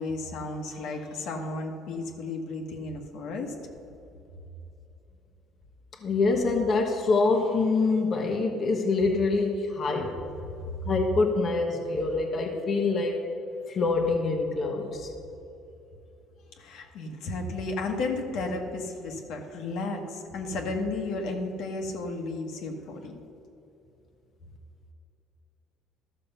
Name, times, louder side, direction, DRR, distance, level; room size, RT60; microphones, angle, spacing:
voice 1, 0.0-3.5 16.6-23.2, left 3 dB, 75° left, 2 dB, 1.4 m, -33 dB
voice 2, 6.0-10.2 10.8-13.2 13.7-15.1, left 3 dB, 40° left, 2 dB, 1.1 m, -25 dB
12.5 x 6.5 x 5.5 m, 2.9 s
cardioid pair, 115°, 0 cm